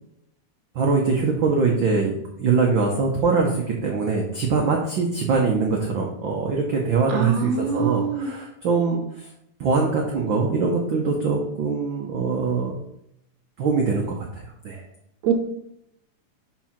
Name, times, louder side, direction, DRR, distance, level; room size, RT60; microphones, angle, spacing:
voice 1, 0.7-2.1 2.4-9.3 9.6-12.8 13.6-14.9, right 4 dB, 85° right, 0 dB, 1.0 m, -23 dB
voice 2, 7.1-8.3 15.2-15.3, right 6 dB, 70° right, 4 dB, 2.3 m, -24 dB
6.2 x 4.6 x 5.8 m, 0.77 s
omnidirectional pair, 3.6 m